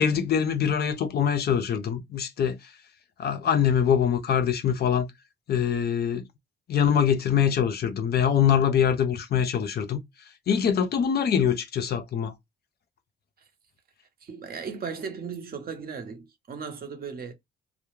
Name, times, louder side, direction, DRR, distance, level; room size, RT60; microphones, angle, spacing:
voice 1, 0.0-2.6 3.2-5.1 5.5-6.2 6.7-10.0 10.5-12.3, left 8 dB, 55° left, 0.5 m, -23 dB
voice 2, 14.2-17.3, right 6 dB, 50° right, 0.7 m, -36 dB
2.2 x 2.0 x 3.1 m
cardioid pair, 90°, 20 cm